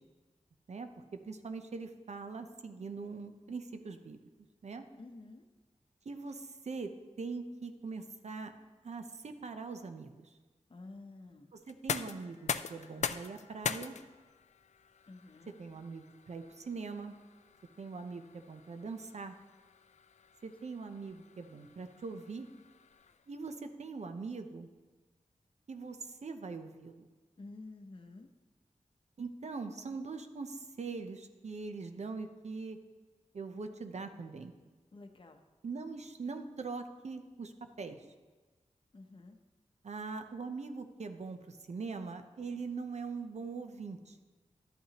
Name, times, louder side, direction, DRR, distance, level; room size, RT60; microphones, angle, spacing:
voice 1, 0.7-4.2 4.6-4.9 6.0-6.9 7.2-8.5 8.8-10.3 11.5-14.0 15.6-17.1 17.8-19.4 20.4-22.5 23.3-24.7 25.7-27.1 29.2-32.8 33.3-34.5 35.6-38.0 39.8-44.2, right 4 dB, 65° right, 7 dB, 0.7 m, -42 dB
voice 2, 5.0-5.5 10.7-11.5 15.1-15.5 27.4-28.3 34.9-35.4 38.9-39.4, left 2 dB, 45° left, 6 dB, 0.8 m, -50 dB
sound 1, 11.6-23.4, left 6 dB, 65° left, 0.4 m, -43 dB
12.0 x 8.5 x 2.9 m, 1.3 s
wide cardioid pair, 95°, 13 cm